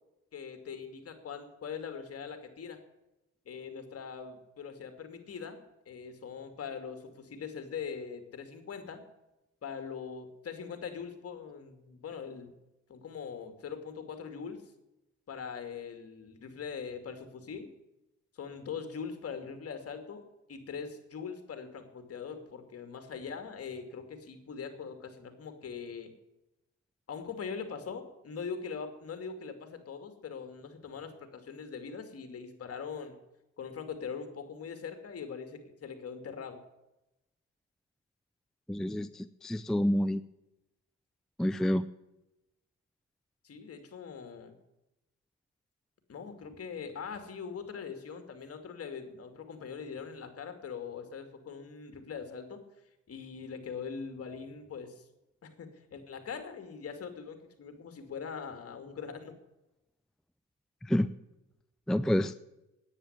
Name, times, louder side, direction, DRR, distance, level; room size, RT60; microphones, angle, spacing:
voice 1, 0.3-2.8 3.5-9.0 9.6-12.6 12.9-14.6 15.3-17.7 18.4-26.1 27.1-33.2 33.6-36.6 43.4-44.5 46.1-52.6 53.1-55.0 55.4-59.3, left 6 dB, 50° left, 7 dB, 2.5 m, -42 dB
voice 2, 38.7-40.2 41.4-41.9 60.8-61.1 61.9-62.3, equal, ahead, 12 dB, 0.5 m, -28 dB
10.0 x 9.4 x 9.9 m, 0.93 s
cardioid pair, 90°, 30 cm